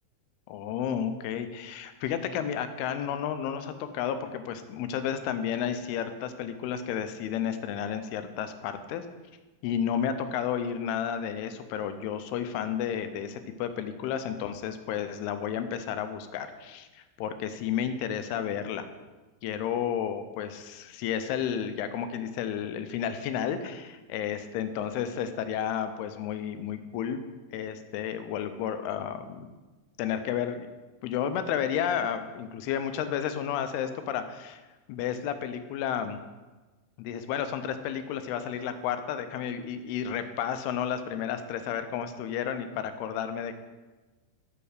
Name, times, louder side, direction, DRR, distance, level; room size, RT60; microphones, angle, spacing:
voice 1, 0.5-9.1 9.6-18.9 19.4-27.2 27.5-29.5 30.0-30.7 31.0-34.6 34.9-36.2 37.0-43.6, left 8 dB, 90° left, 9 dB, 2.6 m, -32 dB
7.5 x 5.5 x 6.4 m, 1.2 s
omnidirectional pair, 4.5 m